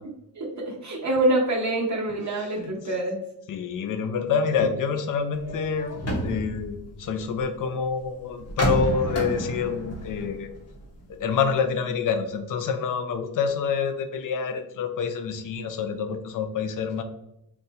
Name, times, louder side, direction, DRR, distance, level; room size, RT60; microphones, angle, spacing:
voice 1, 0.4-3.2, right 1 dB, 45° right, -2 dB, 0.8 m, -25 dB
voice 2, 2.4-2.7 3.5-5.9 6.2-10.5 11.1-17.0, left 6 dB, 55° left, 8 dB, 0.5 m, -27 dB
sound 1, 5.3-7.6 8.4-11.2 11.5-11.6, right 1 dB, 40° left, 0.9 m, -30 dB
4.0 x 2.2 x 2.7 m, 0.81 s
wide cardioid pair, 115°, 38 cm